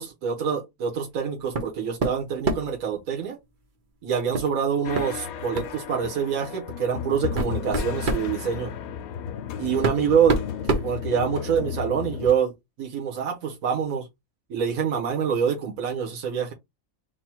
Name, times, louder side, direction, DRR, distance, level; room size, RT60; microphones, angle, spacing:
voice 1, 0.0-3.4 4.0-8.7 9.6-10.4 10.7-12.5 12.8-14.1 14.5-16.5, right 7 dB, 80° right, 1.6 m, -26 dB
sound 1, 1.5-1.7 2.0-2.8 4.3-4.5 4.9-5.1 5.5-5.8 6.6-6.7 7.2-8.3 9.3-9.4 9.8-11.6, right 3 dB, 45° right, 0.8 m, -26 dB
sound 2, 4.8-12.3, left 8 dB, 90° left, 1.1 m, -34 dB
3.9 x 2.3 x 4.4 m
omnidirectional pair, 1.5 m